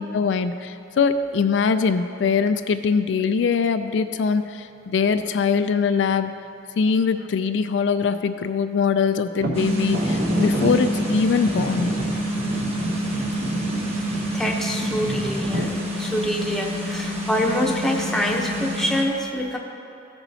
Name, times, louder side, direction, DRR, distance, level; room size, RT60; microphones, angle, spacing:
voice 1, 0.0-6.3 6.8-11.9, left 5 dB, 75° left, 9 dB, 0.4 m, -22 dB
sound 1, 9.4-15.6, right 1 dB, 55° right, 0.9 m, -29 dB
sound 2, 9.5-19.0, equal, 35° right, 1.2 m, -27 dB
voice 2, 14.3-19.6, equal, ahead, -1 dB, 0.8 m, -25 dB
15.0 x 7.0 x 2.8 m, 2.7 s
head